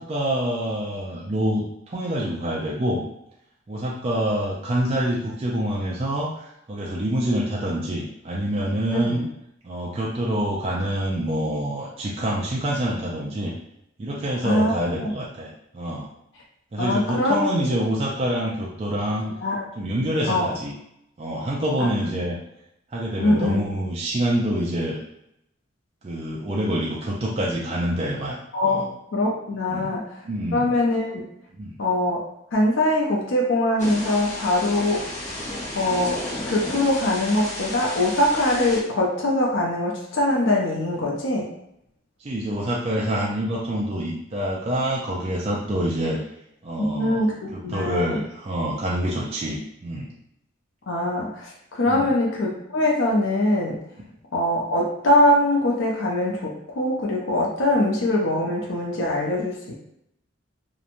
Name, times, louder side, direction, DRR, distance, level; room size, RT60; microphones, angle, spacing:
voice 1, 0.0-3.0 3.7-9.2 9.6-13.5 14.0-16.1 16.7-19.3 19.8-20.7 21.2-22.4 22.9-25.0 26.0-28.4 28.6-28.9 29.7-29.9 30.2-30.8 31.6-31.8 42.2-46.2 46.6-47.2 47.5-50.1 51.9-52.1, right 1 dB, 30° right, -4 dB, 0.3 m, -26 dB
voice 2, 8.9-9.2 14.4-15.1 16.8-17.8 19.4-19.7 20.3-20.5 21.8-21.9 23.2-23.6 28.5-28.8 29.1-30.3 30.5-31.2 31.8-32.2 32.5-35.0 35.7-41.5 46.8-48.2 50.9-53.8 54.3-59.7, left 1 dB, 70° left, -2 dB, 0.5 m, -22 dB
Thunder / Rain, 33.8-38.8, left 1 dB, 35° left, 0.8 m, -33 dB
2.9 x 2.1 x 2.5 m, 0.78 s
head